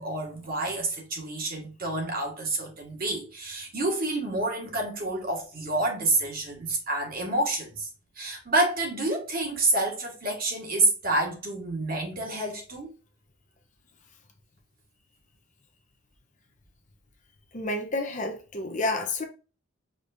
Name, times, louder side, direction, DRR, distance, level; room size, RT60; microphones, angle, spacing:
voice 1, 0.0-7.9 8.2-12.9, right 2 dB, 40° right, 1.4 m, -28 dB
voice 2, 17.5-19.3, left 2 dB, 35° left, 0.7 m, -30 dB
5.1 x 3.0 x 2.5 m
head